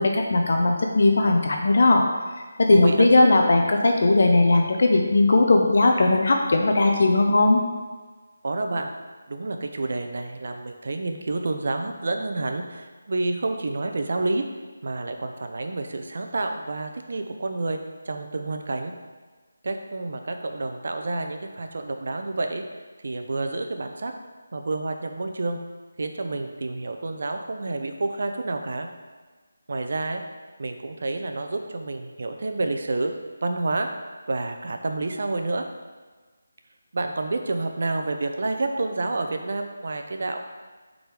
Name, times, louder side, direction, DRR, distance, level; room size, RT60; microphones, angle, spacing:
voice 1, 0.0-2.0 2.6-7.6, left 2 dB, 60° left, 2 dB, 0.8 m, -18 dB
voice 2, 2.7-3.3 8.4-8.9 9.3-14.4 14.8-17.8 18.0-18.9 19.6-22.6 23.0-24.1 24.5-25.6 26.0-28.9 29.7-30.2 30.6-33.1 33.4-33.9 34.3-35.6 36.9-40.4, right 2 dB, 60° right, 5 dB, 0.7 m, -29 dB
6.4 x 4.0 x 4.8 m, 1.3 s
figure-of-eight pair, 165°, 0 cm